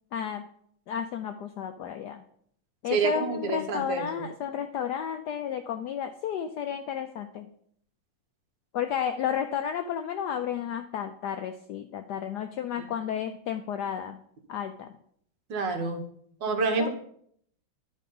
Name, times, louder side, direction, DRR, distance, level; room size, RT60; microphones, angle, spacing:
voice 1, 0.1-0.5 0.9-2.2 2.8-7.5 8.7-14.2 14.5-14.9 16.8-16.9, left 8 dB, 90° left, 7 dB, 0.9 m, -32 dB
voice 2, 2.9-4.3 12.8-12.9 15.5-16.0 16.4-16.9, right 4 dB, 65° right, 3 dB, 1.7 m, -28 dB
11.0 x 4.2 x 5.3 m, 0.66 s
omnidirectional pair, 2.3 m